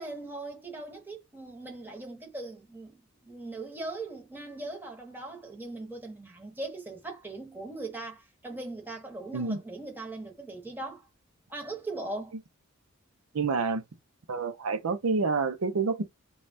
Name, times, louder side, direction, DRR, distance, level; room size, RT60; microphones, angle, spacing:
voice 1, 0.0-11.1 11.5-12.3, right 2 dB, 10° right, 1.0 m, -40 dB
voice 2, 13.3-13.8 14.3-16.0, right 4 dB, 85° right, 0.6 m, -28 dB
3.2 x 2.3 x 2.5 m
head